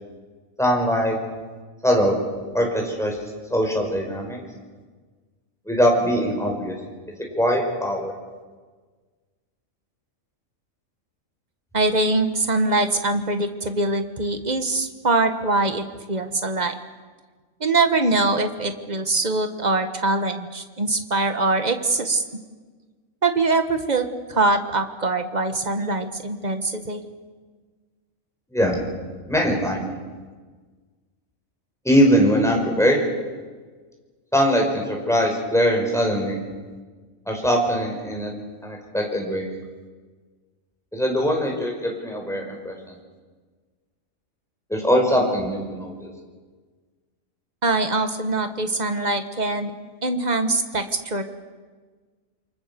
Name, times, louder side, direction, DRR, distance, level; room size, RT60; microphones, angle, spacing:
voice 1, 0.6-1.2 1.8-2.2 2.5-3.2 3.5-4.4 5.7-6.7 7.4-8.1 28.5-28.8 29.3-29.9 31.8-33.0 34.3-36.4 37.3-38.3 38.6-39.5 40.9-42.8 44.7-46.1, equal, ahead, 0 dB, 5.3 m, -21 dB
voice 2, 11.7-16.7 17.6-22.2 23.2-27.0 47.6-49.7 50.0-51.2, right 2 dB, 30° right, 7 dB, 1.7 m, -23 dB
28.0 x 24.5 x 7.0 m, 1.4 s
omnidirectional pair, 1.4 m